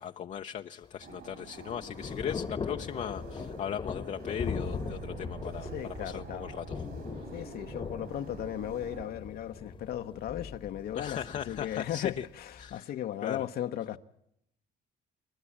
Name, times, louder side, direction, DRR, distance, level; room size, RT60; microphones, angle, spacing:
voice 1, 0.0-6.9 7.1-7.3 10.9-12.3 12.6-12.9 13.2-13.5, left 9 dB, 45° left, 0.7 m, -38 dB
Thunder / Rain, 0.8-12.8, left 5 dB, 30° left, 1.2 m, -41 dB
sound 1, 1.0-9.1, right 4 dB, 60° right, 5.1 m, -47 dB
sound 2, 4.4-12.2, right 6 dB, 80° right, 7.0 m, -49 dB
voice 2, 5.7-6.5 7.3-11.2 11.5-14.0, left 11 dB, 65° left, 1.0 m, -36 dB
29.0 x 12.0 x 8.6 m
cardioid pair, 110°, 17 cm